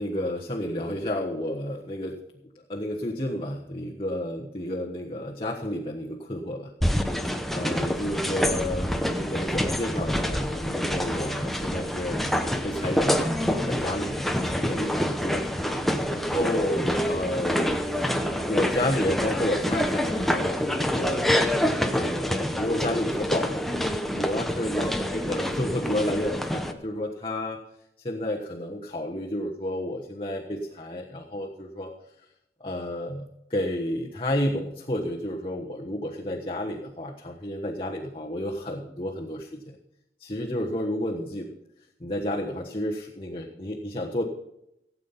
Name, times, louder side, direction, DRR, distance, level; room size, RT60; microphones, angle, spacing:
voice 1, 0.0-2.2 2.7-6.7 7.2-12.2 12.6-15.4 16.1-17.7 18.0-21.3 21.9-23.8 24.2-27.6 28.0-31.9 32.6-39.8 40.2-41.5 42.0-44.2, left 1 dB, 30° left, -1 dB, 1.3 m, -31 dB
sound 1, 6.8-26.7, equal, ahead, 0.8 m, -27 dB
17.0 x 8.5 x 5.7 m, 0.82 s
head